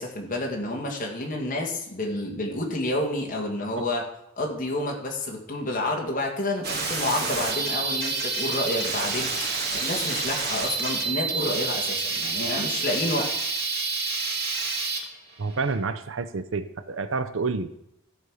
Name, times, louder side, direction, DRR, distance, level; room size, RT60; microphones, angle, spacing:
voice 1, 0.0-4.0 4.4-13.3, left 1 dB, 35° left, 1 dB, 2.1 m, -29 dB
sound 1, 6.6-15.7, right 4 dB, 45° right, 1.9 m, -28 dB
voice 2, 15.4-17.8, right 4 dB, 65° right, 12 dB, 0.6 m, -29 dB
13.5 x 5.4 x 6.4 m, 0.82 s
head